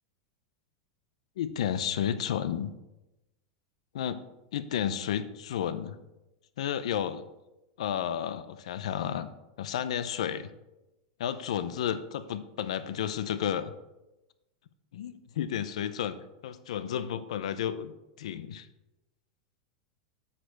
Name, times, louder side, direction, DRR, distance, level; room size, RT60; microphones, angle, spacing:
voice 1, 1.4-2.7 3.9-4.2 4.5-6.0 6.6-7.2 7.8-9.3 9.6-10.4 11.2-13.7 14.9-16.2 16.4-17.9 18.2-18.7, left 9 dB, 85° left, 13 dB, 0.6 m, -32 dB
7.6 x 6.6 x 4.6 m, 0.97 s
supercardioid pair, 175°, 3 cm